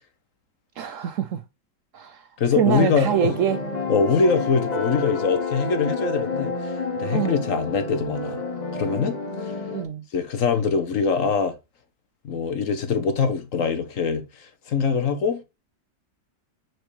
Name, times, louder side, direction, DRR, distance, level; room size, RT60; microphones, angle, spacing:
voice 1, 0.8-1.4 1.9-2.3 2.6-3.6 7.1-7.4 9.7-10.0, right 9 dB, 75° right, 0.7 m, -25 dB
voice 2, 2.4-3.3 3.9-8.4 8.7-9.5 10.1-11.5 12.2-15.4, left 5 dB, 55° left, 1.2 m, -23 dB
sound 1, 2.7-9.8, left 3 dB, 30° left, 0.9 m, -29 dB
6.1 x 5.3 x 3.2 m
omnidirectional pair, 1.9 m